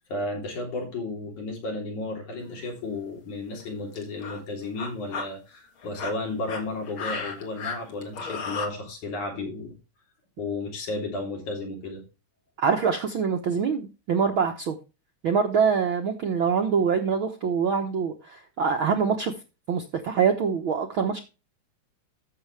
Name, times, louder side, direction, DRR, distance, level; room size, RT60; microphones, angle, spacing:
voice 1, 0.1-9.8 10.4-12.0, left 2 dB, 70° left, 0 dB, 4.7 m, -33 dB
sound 1, 2.4-2.7 3.5-3.6 3.9-4.4 4.8-5.2 5.8-8.7, left 4 dB, 45° left, 2.3 m, -34 dB
voice 2, 12.6-14.8 15.2-19.3 19.7-21.2, right 6 dB, 65° right, 4 dB, 1.3 m, -24 dB
14.0 x 6.4 x 3.4 m, 0.29 s
omnidirectional pair, 3.6 m